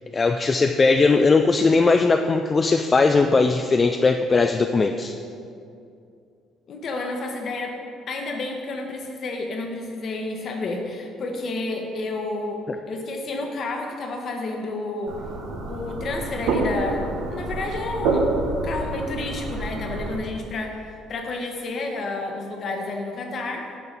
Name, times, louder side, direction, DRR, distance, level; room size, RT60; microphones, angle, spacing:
voice 1, 0.1-5.2, left 3 dB, 30° left, 6 dB, 0.3 m, -19 dB
voice 2, 6.7-7.8 8.1-12.6 12.9-15.1 15.7-18.3 18.6-23.8, left 2 dB, 55° left, 2 dB, 1.2 m, -30 dB
sound 1, 15.1-20.2, right 3 dB, 85° right, 1.1 m, -27 dB
9.4 x 5.7 x 4.1 m, 2.5 s
cardioid pair, 90°, 0 cm